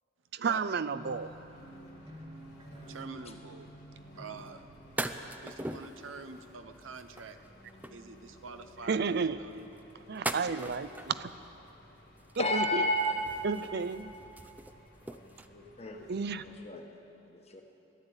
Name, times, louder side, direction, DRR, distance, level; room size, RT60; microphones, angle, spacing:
voice 1, 0.3-1.3 8.9-9.4 10.1-11.3 12.4-12.8 13.4-14.1 16.1-16.4, right 5 dB, 55° right, 14 dB, 0.5 m, -32 dB
sound 1, 0.9-5.5, equal, 35° right, 1.8 m, -50 dB
Engine, 1.0-16.6, left 1 dB, 55° left, 2.1 m, -56 dB
voice 2, 2.9-3.7 4.2-4.6 5.4-7.4 7.9-9.8, right 4 dB, 90° right, 9 dB, 0.7 m, -46 dB
sound 2, 4.4-4.5 5.0-6.0 6.8-8.1 9.5-11.4 12.2-12.7 12.9-15.5, right 2 dB, 10° right, 0.4 m, -40 dB
voice 3, 12.4-13.4 15.0-15.2 15.5-16.1 16.4-16.8 17.3-17.6, left 1 dB, 35° left, 3 dB, 1.3 m, -32 dB
13.5 x 11.5 x 9.0 m, 2.9 s
head